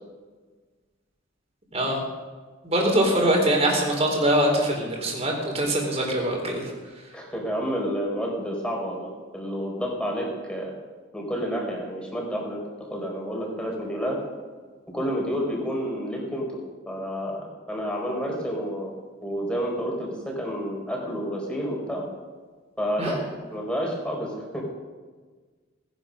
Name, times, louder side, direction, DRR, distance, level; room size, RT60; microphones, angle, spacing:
voice 1, 2.6-6.6 23.0-23.1, right 1 dB, 35° right, 1 dB, 3.9 m, -23 dB
voice 2, 7.1-10.7 11.1-12.6 12.9-14.2 14.9-16.6 16.9-18.9 19.2-22.0 22.8-24.6, equal, 5° left, -1 dB, 4.3 m, -29 dB
18.5 x 11.0 x 6.5 m, 1.4 s
head